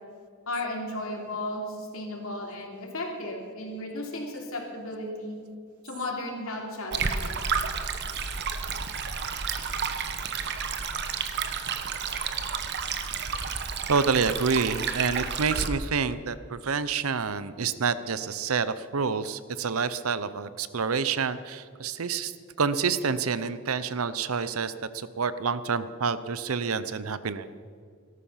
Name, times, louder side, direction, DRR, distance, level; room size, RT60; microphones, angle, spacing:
voice 1, 0.5-5.4 5.8-7.3, left 1 dB, 70° left, 0 dB, 3.3 m, -34 dB
Stream, 6.9-15.7, right 6 dB, 55° right, 1.1 m, -31 dB
voice 2, 13.9-22.3 22.6-27.5, right 5 dB, 85° right, 14 dB, 0.7 m, -28 dB
17.5 x 13.5 x 5.7 m, 2.2 s
head